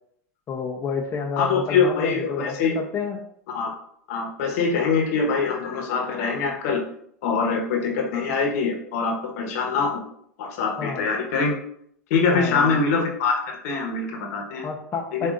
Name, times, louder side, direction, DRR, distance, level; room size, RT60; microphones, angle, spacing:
voice 1, 0.5-3.2 10.8-11.1 12.3-12.8 14.6-15.3, left 5 dB, 30° left, 0 dB, 0.7 m, -29 dB
voice 2, 1.4-2.8 3.5-3.7 4.1-6.8 7.2-10.0 10.4-11.5 12.1-14.6 15.1-15.3, left 5 dB, 65° left, 1 dB, 1.1 m, -24 dB
7.4 x 2.6 x 2.5 m, 0.68 s
hypercardioid pair, 100°, 9 cm